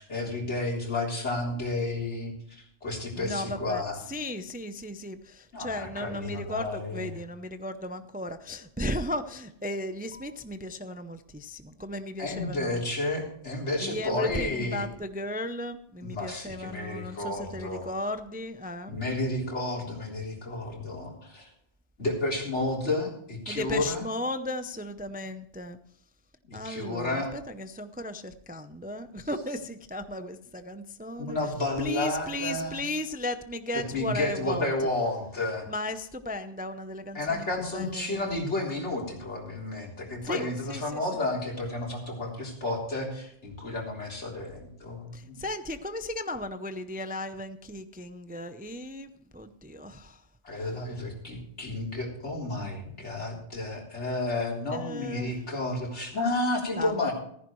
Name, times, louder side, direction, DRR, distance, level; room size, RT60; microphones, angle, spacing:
voice 1, 0.0-4.0 5.5-7.1 12.2-14.9 16.0-17.9 18.9-21.5 22.0-24.1 26.4-27.3 31.2-32.8 33.7-35.7 37.1-45.4 50.4-57.1, left 2 dB, 75° left, -1 dB, 3.9 m, -31 dB
voice 2, 3.2-3.8 4.1-12.8 13.8-19.0 23.5-25.8 26.5-31.4 31.8-34.7 35.7-37.5 37.7-38.4 40.2-41.0 45.1-50.2 50.5-50.7 52.5-52.7 54.7-55.3 56.7-57.1, left 1 dB, 15° right, 10 dB, 0.4 m, -35 dB
15.0 x 14.5 x 3.1 m, 0.68 s
omnidirectional pair, 1.2 m